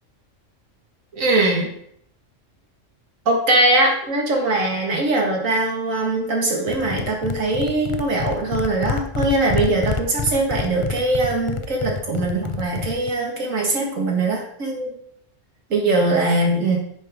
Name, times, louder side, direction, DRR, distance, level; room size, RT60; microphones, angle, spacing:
voice 1, 1.1-1.7 3.3-15.0 15.7-16.8, right 2 dB, 90° right, 0 dB, 2.3 m, -21 dB
sound 1, 6.7-13.1, left 5 dB, 40° left, 0.4 m, -28 dB
9.8 x 6.6 x 3.7 m, 0.68 s
omnidirectional pair, 1.3 m